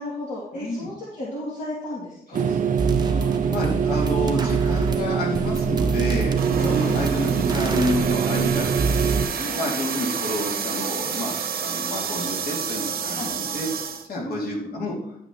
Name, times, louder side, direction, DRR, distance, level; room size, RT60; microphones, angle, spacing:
voice 1, 0.0-3.9 6.5-7.1 9.3-9.6 13.0-13.4 14.2-14.8, left 1 dB, 50° left, -7 dB, 2.6 m, -35 dB
voice 2, 0.5-0.9 2.4-2.6 3.5-8.7 9.5-13.7 14.1-14.9, left 1 dB, 75° left, -2 dB, 2.8 m, -29 dB
sound 1, 2.3-9.3, right 7 dB, 55° right, 0.6 m, -24 dB
sound 2, 2.4-2.5 2.8-9.2, right 3 dB, 25° right, 0.8 m, -29 dB
sound 3, 6.4-14.1, right 6 dB, 75° right, 1.1 m, -29 dB
11.0 x 9.0 x 3.1 m, 0.76 s
wide cardioid pair, 165°, 16 cm